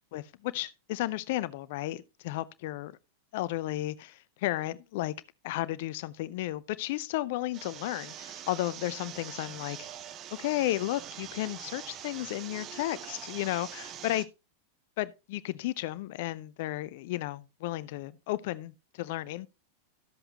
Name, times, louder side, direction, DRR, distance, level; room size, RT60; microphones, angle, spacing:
voice 1, 0.1-2.9 3.3-5.1 5.4-9.9 10.4-14.3 15.0-19.5, left 16 dB, 50° left, 0.6 m, -33 dB
sound 1, 7.5-14.2, right 10 dB, 35° right, 0.8 m, -44 dB
13.0 x 7.8 x 2.8 m
figure-of-eight pair, 90°, 0 cm